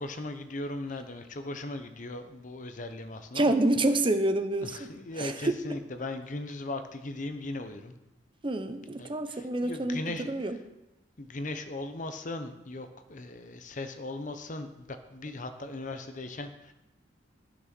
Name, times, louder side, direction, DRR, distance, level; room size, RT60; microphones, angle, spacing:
voice 1, 0.0-3.5 4.6-7.9 9.0-10.3 11.2-16.7, left 2 dB, 45° left, 8 dB, 0.8 m, -38 dB
voice 2, 3.3-5.8 8.4-10.6, right 2 dB, 25° right, 9 dB, 0.8 m, -28 dB
12.5 x 6.1 x 6.1 m, 0.93 s
head